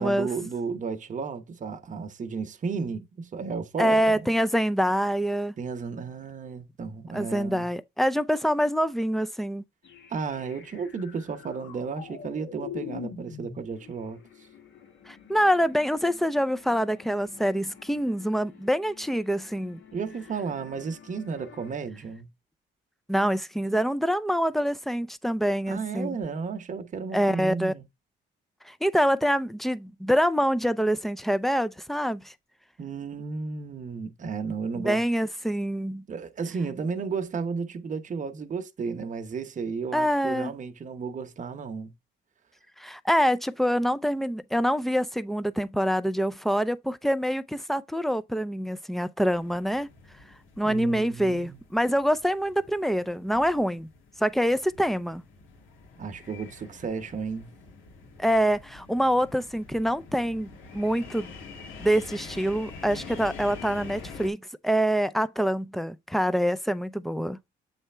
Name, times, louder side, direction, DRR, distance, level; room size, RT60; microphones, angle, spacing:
voice 1, 0.0-4.3 5.6-7.7 10.1-14.2 19.9-22.3 25.7-27.8 32.8-35.0 36.1-41.9 50.6-51.6 56.0-57.5, right 5 dB, 40° right, 0.9 m, -33 dB
voice 2, 3.8-5.5 7.1-9.6 15.1-19.8 23.1-26.2 27.1-27.7 28.6-32.3 34.8-36.0 39.9-40.5 42.8-49.9 50.6-53.9 54.2-55.2 58.2-61.3 61.8-67.4, equal, ahead, 0.4 m, -25 dB
sound 1, 9.8-21.7, left 8 dB, 70° left, 1.8 m, -46 dB
sound 2, 49.3-64.3, left 4 dB, 90° left, 1.8 m, -46 dB
7.9 x 3.4 x 4.3 m
cardioid pair, 90°, 20 cm